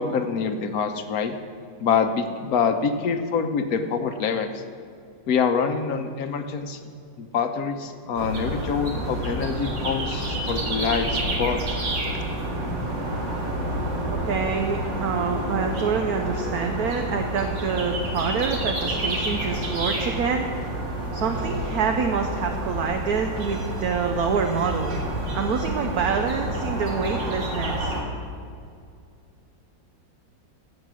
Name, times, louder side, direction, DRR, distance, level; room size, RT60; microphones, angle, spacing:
voice 1, 0.0-1.3 1.8-4.6 5.3-6.8 7.2-11.6, left 6 dB, 60° left, 7 dB, 1.2 m, -25 dB
sound 1, 8.2-28.0, right 1 dB, 80° right, 2.6 m, -29 dB
voice 2, 14.1-20.4 21.1-24.9 25.3-27.9, right 5 dB, 60° right, 4 dB, 1.2 m, -26 dB
15.5 x 7.7 x 6.3 m, 2.4 s
omnidirectional pair, 2.0 m